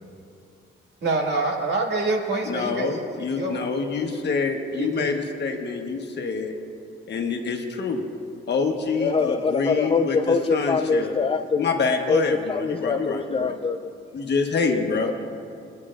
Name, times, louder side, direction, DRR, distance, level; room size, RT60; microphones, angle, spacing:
voice 1, 1.0-3.7 4.7-5.1, right 3 dB, 55° right, -1 dB, 2.0 m, -26 dB
voice 2, 2.5-6.5 7.1-8.0 8.5-11.1 11.6-13.5 14.1-15.1, left 4 dB, 55° left, 3 dB, 1.2 m, -26 dB
voice 3, 9.0-11.7 12.1-12.2 12.5-13.8 14.7-14.8, left 5 dB, 25° left, 7 dB, 0.4 m, -23 dB
20.0 x 9.5 x 2.5 m, 2.5 s
cardioid pair, 90°, 21 cm